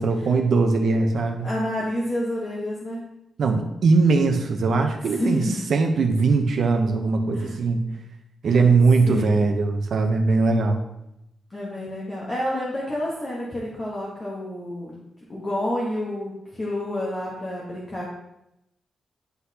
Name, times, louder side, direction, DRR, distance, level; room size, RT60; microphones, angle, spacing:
voice 1, 0.0-1.5 3.4-5.4 5.7-7.8 8.4-10.8, right 4 dB, 50° right, 5 dB, 0.7 m, -20 dB
voice 2, 1.4-3.0 5.0-5.7 7.3-7.5 8.4-8.7 9.0-9.5 11.5-15.0 15.3-18.1, left 1 dB, 20° left, -5 dB, 1.0 m, -29 dB
9.3 x 4.0 x 2.8 m, 0.86 s
wide cardioid pair, 180°, 0 cm